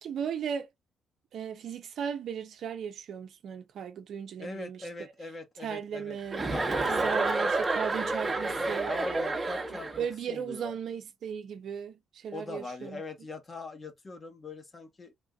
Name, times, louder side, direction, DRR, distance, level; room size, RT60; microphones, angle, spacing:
voice 1, 0.0-0.7 1.3-4.9 5.6-6.4 6.9-8.9 9.7-13.0, right 7 dB, 65° right, 0.7 m, -36 dB
voice 2, 4.4-6.2 6.5-7.6 8.2-10.7 12.3-15.1, left 3 dB, 30° left, 1.2 m, -42 dB
Chuckle chortle, 6.3-10.1, right 3 dB, 25° right, 1.0 m, -29 dB
3.5 x 2.6 x 2.4 m
cardioid pair, 90°, 0 cm